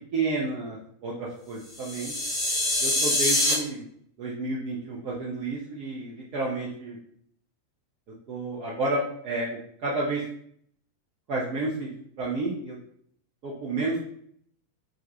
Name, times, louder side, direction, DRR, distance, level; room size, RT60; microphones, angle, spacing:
voice 1, 0.1-2.1 2.8-3.8 4.2-7.0 8.3-10.2 11.3-12.8 13.4-14.0, right 2 dB, 45° right, -5 dB, 0.6 m, -31 dB
sound 1, 1.7-3.5, left 1 dB, 15° left, 1.0 m, -25 dB
2.4 x 2.3 x 3.7 m, 0.65 s
figure-of-eight pair, 90°, 0 cm